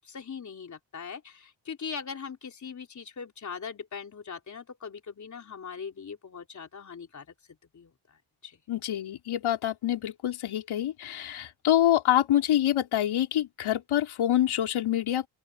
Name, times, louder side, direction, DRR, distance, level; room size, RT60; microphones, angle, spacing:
voice 1, 0.0-7.3 7.7-8.2 8.4-8.6, left 6 dB, 35° left, 3.6 m, -40 dB
voice 2, 8.7-15.3, left 12 dB, 90° left, 4.0 m, -26 dB
open air
wide cardioid pair, 155°, 47 cm